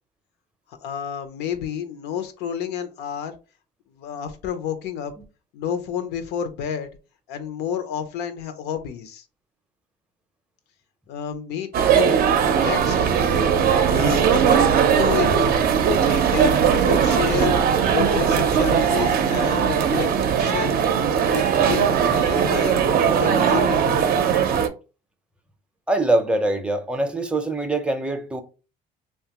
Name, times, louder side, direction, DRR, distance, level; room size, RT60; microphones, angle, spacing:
voice 1, 0.7-3.3 3.9-5.1 5.5-6.9 7.3-9.2 11.1-12.2 12.6-12.9 13.9-14.6 15.0-15.5 16.0-17.6 17.9-20.1 20.4-20.8 21.3-22.7 23.1-24.2, left 8 dB, 85° left, 0.6 m, -30 dB
sound 1, 11.7-24.7, right 7 dB, 60° right, 0.5 m, -19 dB
voice 2, 25.9-28.4, right 2 dB, 5° right, 0.5 m, -23 dB
2.8 x 2.2 x 2.8 m
cardioid pair, 110°, 17 cm